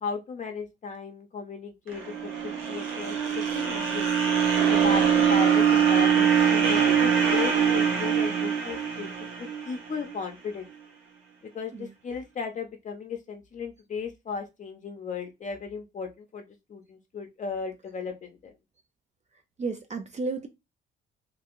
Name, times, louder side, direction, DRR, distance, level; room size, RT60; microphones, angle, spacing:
voice 1, 0.0-4.1 4.7-10.7 11.5-16.4 16.7-18.5, left 5 dB, 40° left, 0.5 m, -36 dB
sound 1, 1.9-10.1, right 7 dB, 85° right, 0.8 m, -23 dB
voice 2, 19.6-20.5, right 4 dB, 35° right, 0.4 m, -32 dB
2.5 x 2.3 x 2.9 m
cardioid pair, 90°, 20 cm